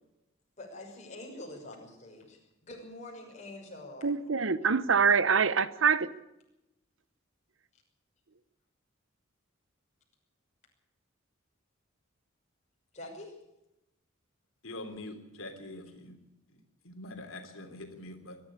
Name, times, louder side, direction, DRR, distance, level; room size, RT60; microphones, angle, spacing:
voice 1, 0.6-4.1 12.9-13.3, left 1 dB, 35° left, 6.3 m, -45 dB
voice 2, 4.0-6.1, right 5 dB, 70° right, 0.9 m, -25 dB
voice 3, 14.6-16.2 16.5-16.6 16.8-18.4, left 2 dB, 80° left, 3.2 m, -44 dB
22.5 x 12.0 x 10.0 m
head